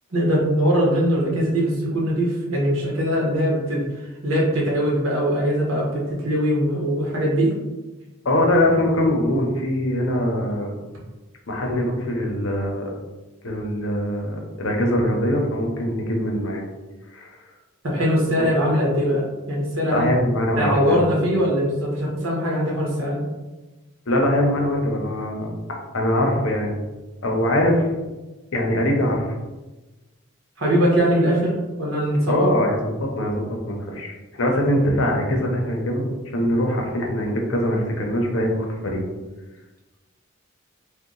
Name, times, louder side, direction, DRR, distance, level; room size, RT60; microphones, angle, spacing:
voice 1, 0.1-7.5 17.8-20.1 20.5-23.2 30.6-32.5, equal, 75° right, -3 dB, 1.1 m, -21 dB
voice 2, 8.2-10.8 11.5-12.8 13.4-16.6 17.1-17.4 18.4-18.5 19.9-21.3 24.1-25.5 25.9-26.7 27.2-27.9 28.5-29.3 32.3-36.1 36.3-39.0, left 1 dB, 70° left, 0 dB, 0.7 m, -22 dB
2.8 x 2.2 x 3.8 m, 1.1 s
head